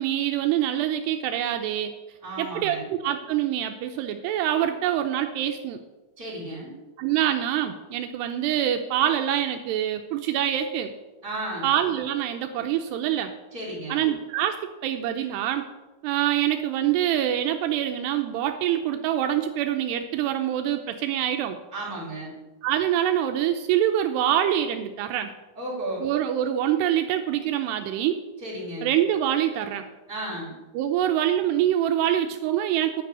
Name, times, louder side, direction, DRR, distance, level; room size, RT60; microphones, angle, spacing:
voice 1, 0.0-1.9 2.4-5.8 7.0-10.9 11.6-13.3 13.9-15.6 16.0-21.6 22.6-25.3 26.0-28.2 28.8-29.8 30.8-33.0, right 11 dB, 85° right, 5 dB, 2.7 m, -25 dB
voice 2, 2.2-2.8 6.2-6.8 11.2-11.7 13.5-14.0 21.7-22.3 25.5-26.0 28.4-28.9 30.1-30.5, right 1 dB, 10° right, -7 dB, 4.9 m, -33 dB
11.0 x 6.1 x 9.1 m, 1.1 s
omnidirectional pair, 4.9 m